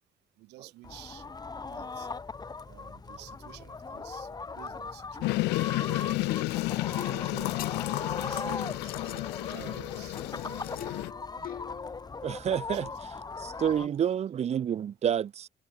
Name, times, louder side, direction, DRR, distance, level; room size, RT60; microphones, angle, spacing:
voice 1, 0.4-1.2 1.6-2.1 2.7-4.3 4.5-6.4 7.1-7.6 8.2-10.8 12.3-12.9 13.6-14.1, right 18 dB, 85° right, 6.7 m, -50 dB
sound 1, 0.8-13.9, left 4 dB, 25° left, 5.4 m, -39 dB
sound 2, 5.2-11.1, left 21 dB, 85° left, 0.8 m, -31 dB
sound 3, 6.3-12.2 13.9-14.0, left 11 dB, 60° left, 3.1 m, -44 dB
voice 2, 12.2-12.9 13.4-15.5, right 9 dB, 40° right, 0.7 m, -29 dB
cardioid pair, 110°, 17 cm